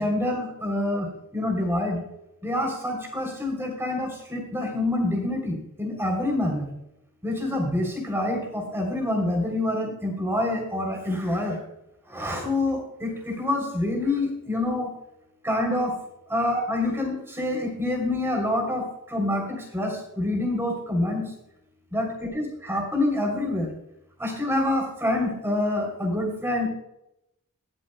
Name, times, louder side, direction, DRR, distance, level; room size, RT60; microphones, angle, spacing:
voice 1, 0.0-2.1 2.4-6.7 7.2-11.6 12.1-14.9 15.4-15.9 16.3-21.3 21.9-23.7 24.2-26.7, left 1 dB, 10° right, 0 dB, 3.1 m, -26 dB
22.0 x 7.6 x 2.2 m, 0.83 s
head